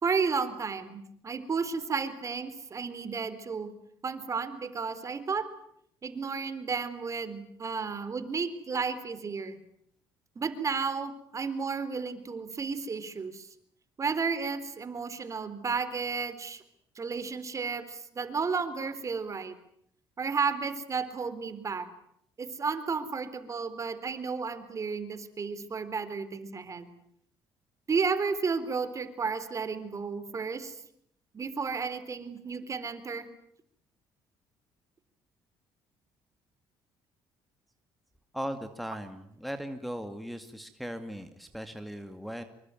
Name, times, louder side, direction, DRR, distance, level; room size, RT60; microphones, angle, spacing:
voice 1, 0.0-3.7 4.0-5.5 6.0-9.6 10.4-13.5 14.0-16.6 17.0-19.5 20.2-21.9 22.4-26.9 27.9-30.8 31.3-33.3, right 5 dB, 35° right, 12 dB, 3.9 m, -32 dB
voice 2, 38.3-42.4, equal, ahead, 7 dB, 2.3 m, -38 dB
26.5 x 23.5 x 9.2 m, 0.72 s
cardioid pair, 90°, 9 cm